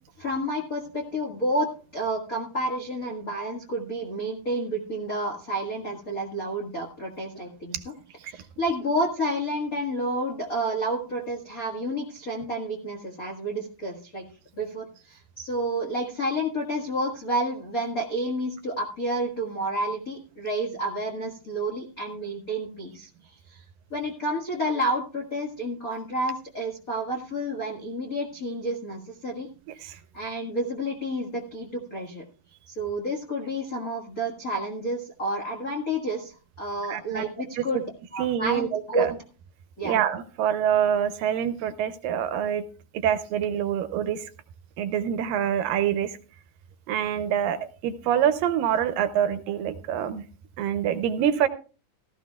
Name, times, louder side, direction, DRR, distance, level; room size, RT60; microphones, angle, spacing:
voice 1, 0.2-7.8 8.3-14.2 14.5-23.6 23.9-29.5 29.8-32.2 32.7-37.8 38.1-39.1 39.8-40.0, right 1 dB, 80° left, -2 dB, 0.7 m, -30 dB
voice 2, 36.9-37.3 37.6-37.8 38.2-39.2 39.8-42.6 42.9-44.3 44.8-46.2 46.9-50.2 50.6-51.5, right 9 dB, 80° right, 11 dB, 2.2 m, -26 dB
17.0 x 13.0 x 2.3 m, 0.35 s
omnidirectional pair, 4.4 m